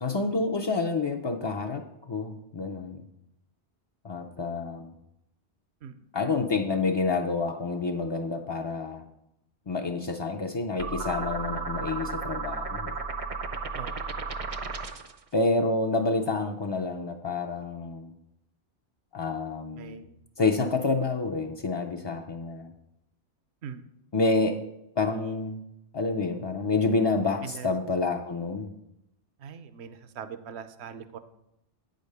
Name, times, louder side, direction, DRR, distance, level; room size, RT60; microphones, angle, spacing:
voice 1, 0.0-3.0 4.0-4.9 6.1-9.0 9.7-13.0 15.3-18.1 19.1-20.0 20.4-22.7 24.1-24.6 25.0-25.6 25.9-28.7, left 3 dB, 40° left, 2 dB, 0.3 m, -28 dB
sound 1, 10.8-15.2, right 4 dB, 40° right, 0.5 m, -34 dB
voice 2, 19.8-20.2 23.6-23.8 27.4-27.7 29.4-31.2, right 7 dB, 70° right, 11 dB, 0.9 m, -41 dB
8.9 x 5.2 x 6.6 m, 0.84 s
omnidirectional pair, 1.2 m